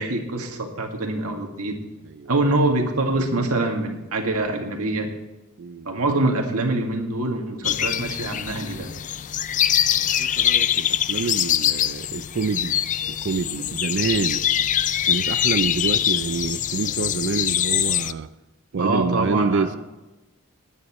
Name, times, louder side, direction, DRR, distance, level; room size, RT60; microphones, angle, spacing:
voice 1, 0.0-1.8 2.3-5.1 5.9-8.9 18.8-19.8, right 2 dB, 80° right, 3 dB, 1.9 m, -24 dB
voice 2, 5.6-5.9 9.9-12.8 13.1-14.4 15.1-18.3 18.7-19.8, right 4 dB, 55° right, 11 dB, 0.4 m, -27 dB
sound 1, 7.6-18.1, left 10 dB, 35° left, 0.4 m, -23 dB
19.5 x 9.4 x 3.1 m, 1.0 s
head